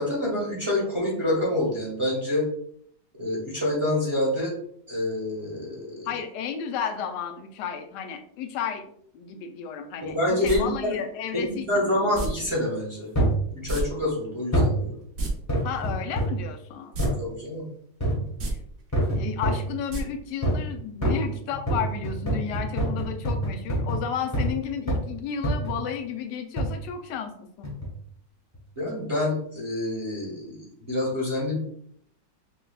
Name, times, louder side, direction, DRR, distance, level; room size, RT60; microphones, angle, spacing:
voice 1, 0.0-2.5 3.2-4.6 4.9-6.1 10.0-11.0 11.3-13.1 13.5-15.0 17.2-17.6 28.8-31.6, left 1 dB, 20° right, -5 dB, 1.0 m, -27 dB
voice 2, 6.1-8.8 9.1-12.1 15.6-17.4 18.5-18.6 19.2-27.7, left 7 dB, 75° left, 5 dB, 1.1 m, -33 dB
sound 1, 10.4-10.6 12.1-12.3 13.7-13.8 14.1-14.2 15.0-15.3 16.9-17.1 17.5-17.6 18.3-18.5 19.9-20.0 20.3-20.4, right 2 dB, 55° right, 0.9 m, -29 dB
sound 2, 13.1-13.5 14.5-14.8 15.5-16.4 17.0-17.2 18.0-18.3 18.9-19.7 20.4-20.7 21.0-24.6 24.9-25.1 25.4-25.8 26.6-26.8 27.6-27.9 28.5-28.6, right 1 dB, 15° left, 0.8 m, -26 dB
5.6 x 2.3 x 2.3 m, 0.66 s
omnidirectional pair, 1.9 m